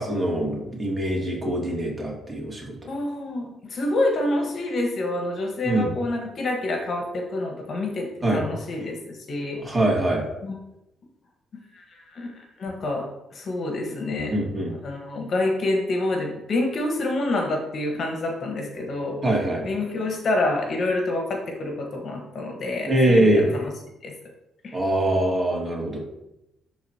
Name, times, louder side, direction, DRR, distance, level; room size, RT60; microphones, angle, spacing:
voice 1, 0.0-2.8 5.6-5.9 8.2-8.4 9.6-10.2 14.3-14.7 19.2-19.7 22.9-23.5 24.7-26.0, right 1 dB, 25° right, -2 dB, 2.6 m, -23 dB
voice 2, 2.9-9.6 10.4-10.6 11.7-12.3 12.6-13.1 13.3-14.3 14.8-19.2 19.6-23.6 24.0-24.1 24.6-24.8, left 2 dB, 55° left, 1 dB, 1.4 m, -27 dB
11.5 x 4.0 x 2.9 m, 0.89 s
supercardioid pair, 65°, 0 cm